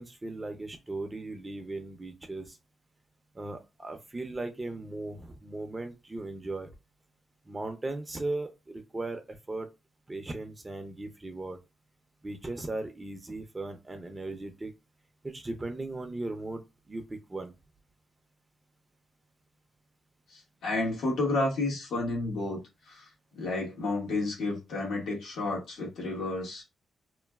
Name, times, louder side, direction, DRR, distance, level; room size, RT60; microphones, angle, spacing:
voice 1, 0.0-2.6 3.3-6.7 7.5-9.7 10.1-11.6 12.2-14.7 15.2-17.5, right 2 dB, 20° right, 0.5 m, -37 dB
voice 2, 20.3-22.6 22.9-23.1 23.3-26.6, left 2 dB, 80° left, 1.4 m, -31 dB
3.0 x 2.2 x 2.2 m
cardioid pair, 100°, 0 cm